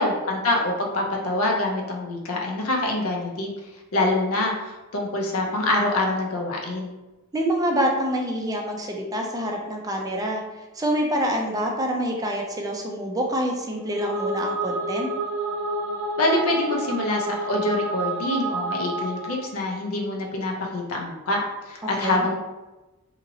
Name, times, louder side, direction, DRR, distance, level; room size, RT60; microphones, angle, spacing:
voice 1, 0.0-3.5 3.9-6.9 16.2-21.4 21.7-22.4, left 2 dB, 80° left, 0 dB, 0.6 m, -25 dB
voice 2, 7.3-15.1 21.8-22.2, equal, 15° right, 1 dB, 0.4 m, -26 dB
sound 1, 13.8-19.5, right 2 dB, 80° right, 0.5 m, -29 dB
2.8 x 2.7 x 2.7 m, 1.1 s
head